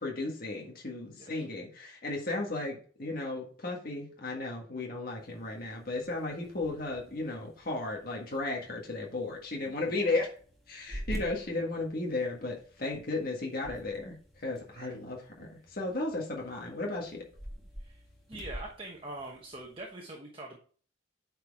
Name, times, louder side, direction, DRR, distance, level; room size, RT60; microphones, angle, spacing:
voice 1, 0.0-10.3 10.7-17.2, left 2 dB, 50° left, -1 dB, 1.6 m, -35 dB
sound 1, 5.1-19.9, equal, ahead, 2.0 m, -48 dB
voice 2, 9.9-10.2 11.5-11.6 14.7-14.9 17.8-18.0 18.3-20.6, right 2 dB, 30° right, 0 dB, 1.1 m, -44 dB
9.2 x 4.6 x 3.5 m, 0.43 s
head